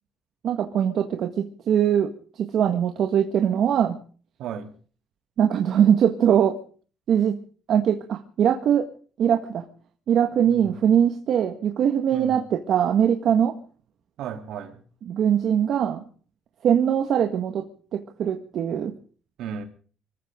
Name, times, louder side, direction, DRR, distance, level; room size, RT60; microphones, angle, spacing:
voice 1, 0.4-2.1 2.4-4.0 5.4-6.5 7.1-7.4 7.7-8.8 9.2-9.6 10.1-13.5 15.1-16.0 16.6-17.6 17.9-18.9, right 9 dB, 60° right, 1.7 m, -21 dB
voice 2, 4.4-4.7 10.4-10.8 12.1-12.4 14.2-14.8 19.4-19.6, right 8 dB, 80° right, 3.3 m, -34 dB
25.5 x 14.5 x 3.8 m
cardioid pair, 130°, 0 cm